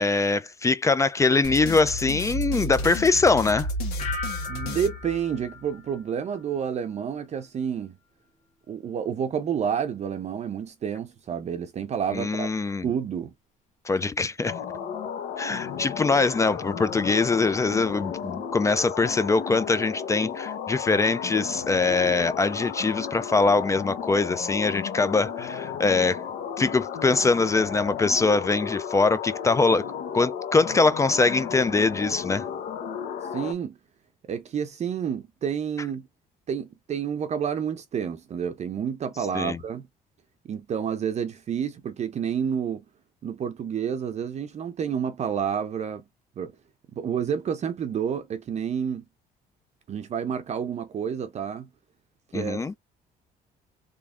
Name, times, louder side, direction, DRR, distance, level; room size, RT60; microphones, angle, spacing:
voice 1, 0.0-3.7 12.1-12.9 13.9-14.5 15.4-26.2 26.6-29.8 30.1-32.5 39.3-39.6 52.3-52.7, left 3 dB, 20° left, 0.3 m, -23 dB
sound 1, 1.4-5.7, left 1 dB, 85° left, 1.6 m, -32 dB
sound 2, 4.0-6.8 7.2-7.6, left 3 dB, 40° left, 1.3 m, -39 dB
voice 2, 4.5-8.0 8.7-12.5 12.8-13.3 33.3-33.8 34.3-36.0 36.5-39.9 40.4-42.8 43.2-46.0 46.4-46.5 46.9-49.0 49.9-51.7 52.3-52.8, right 8 dB, 40° right, 0.6 m, -29 dB
sound 3, 14.4-33.5, left 8 dB, 70° left, 0.9 m, -34 dB
3.4 x 3.4 x 2.4 m
cardioid pair, 110°, 17 cm